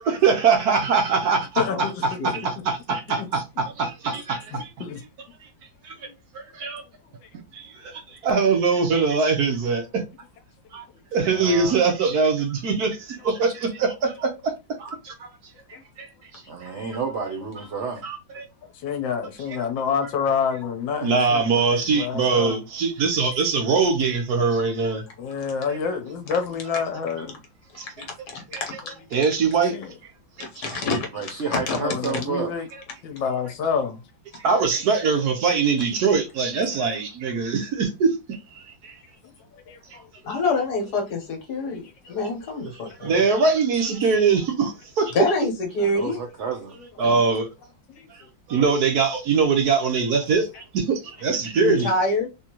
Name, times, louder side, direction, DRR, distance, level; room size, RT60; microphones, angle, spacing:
voice 1, 0.1-4.7 5.4-5.5 5.8-6.1 6.3-6.8 7.5-10.0 10.7-10.8 11.1-14.5 14.8-15.3 16.0-16.7 18.0-18.5 21.0-25.0 25.7-25.8 27.7-27.9 28.5-28.6 29.1-29.7 30.6-30.7 34.3-39.0 43.0-45.2 47.0-47.5 48.1-51.9, right 5 dB, 65° right, 1.1 m, -23 dB
voice 2, 1.6-2.3 3.2-3.3 4.8-5.0 7.2-7.3 15.7-15.8 16.7-16.8 18.7-22.6 25.2-27.4 29.7-29.9 31.5-32.7 33.0-34.0 41.6-41.7 42.1-42.2 43.1-43.2 46.4-47.3 47.9-48.1, left 6 dB, 75° left, 1.4 m, -28 dB
voice 3, 11.3-11.8 16.5-18.0 31.1-32.5 45.8-46.8, right 5 dB, 90° right, 0.6 m, -30 dB
voice 4, 28.3-28.9 30.4-31.8 40.3-43.1 45.1-46.2 47.0-47.2 51.6-52.3, left 2 dB, 60° left, 1.6 m, -26 dB
3.7 x 2.8 x 2.8 m
omnidirectional pair, 2.1 m